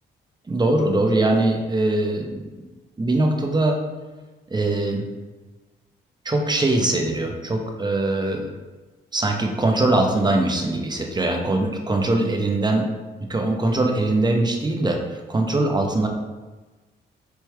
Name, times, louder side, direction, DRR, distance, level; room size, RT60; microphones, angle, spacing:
voice 1, 0.5-2.4 3.0-3.8 4.5-5.0 6.2-8.5 9.1-12.9 13.3-16.1, right 2 dB, 20° right, 2 dB, 0.8 m, -22 dB
4.4 x 3.1 x 3.5 m, 1.2 s
supercardioid pair, 65°, 20 cm